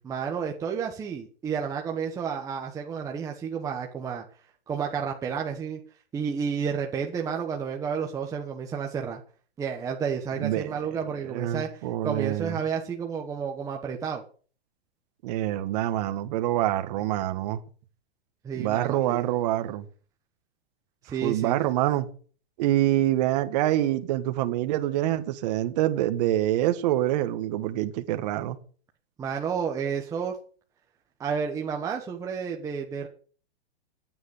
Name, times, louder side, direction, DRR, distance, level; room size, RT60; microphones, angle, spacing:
voice 1, 0.0-4.2 4.7-5.8 6.1-9.2 9.6-14.2 18.4-19.2 21.0-21.6 29.2-30.4 31.2-33.1, right 6 dB, 10° right, 1.1 m, -31 dB
voice 2, 10.4-10.8 11.3-12.5 15.2-17.6 18.5-19.8 21.2-22.1 22.6-28.6, right 14 dB, 40° right, 1.5 m, -26 dB
15.0 x 9.6 x 8.2 m
hypercardioid pair, 160°, 33 cm